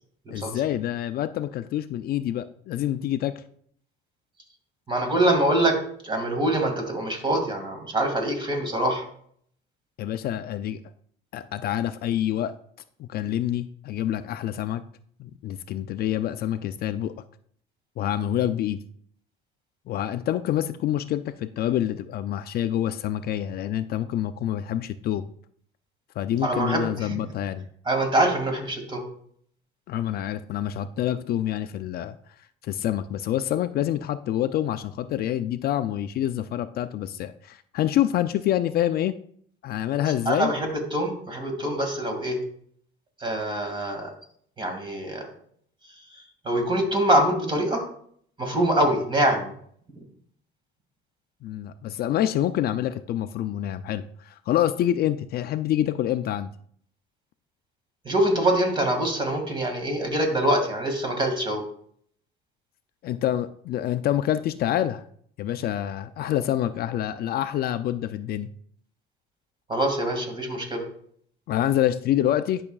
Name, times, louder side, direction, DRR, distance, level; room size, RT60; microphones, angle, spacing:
voice 1, 0.3-3.3 10.0-10.8 11.3-12.5 13.0-14.8 15.2-17.1 18.0-18.8 19.9-25.3 26.2-27.7 29.9-32.2 32.6-39.1 39.6-40.5 51.4-56.5 63.0-65.0 65.4-68.5 71.5-72.6, left 11 dB, 50° left, 11 dB, 0.4 m, -27 dB
voice 2, 4.9-5.8 6.0-9.0 26.4-27.2 27.9-29.0 40.0-42.4 43.2-44.1 44.6-45.3 46.4-47.8 48.4-49.5 58.0-61.6 69.7-70.8, right 1 dB, 25° right, 3 dB, 2.1 m, -24 dB
11.0 x 5.7 x 2.3 m, 0.62 s
cardioid pair, 115°, 20 cm